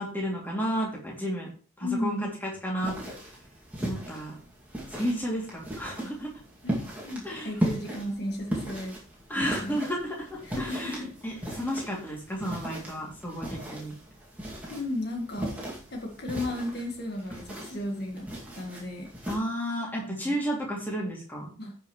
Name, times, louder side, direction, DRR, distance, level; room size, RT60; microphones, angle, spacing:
voice 1, 0.0-1.5 1.8-3.1 3.8-4.4 4.9-6.3 7.2-7.6 9.3-13.9 19.3-21.5, equal, 10° left, -3 dB, 2.7 m, -32 dB
voice 2, 1.8-2.3 6.6-9.0 9.3-9.9 10.4-11.1 14.7-15.5 15.9-18.3 18.5-19.1 20.0-20.3 21.6-21.8, left 1 dB, 50° left, 1 dB, 1.7 m, -34 dB
sound 1, 2.8-19.3, equal, 5° right, 2.3 m, -37 dB
16.0 x 5.8 x 3.2 m, 0.37 s
head